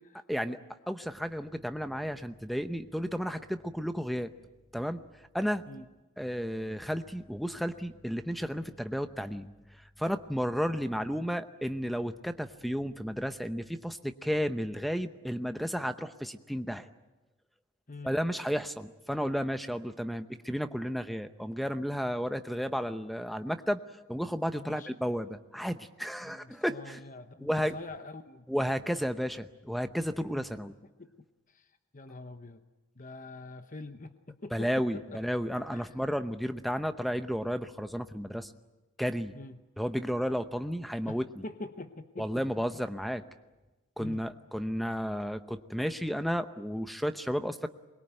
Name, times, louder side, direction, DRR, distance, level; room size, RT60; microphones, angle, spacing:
voice 1, 0.9-4.3 4.7-5.0 5.3-5.6 6.2-9.5 10.0-16.9 18.0-23.8 24.1-27.0 27.4-27.7 28.5-30.7 34.5-38.5 39.0-39.3 39.8-41.4 42.2-43.2 44.0-47.7, equal, ahead, 9 dB, 0.8 m, -32 dB
voice 2, 24.5-24.9 26.2-28.5 30.3-30.4 31.0-31.1 31.5-32.6 33.0-35.2 35.7-35.9 39.3-39.6 41.1-42.4 44.0-44.3, left 2 dB, 35° left, 8 dB, 0.9 m, -45 dB
23.5 x 21.5 x 9.0 m, 1.1 s
head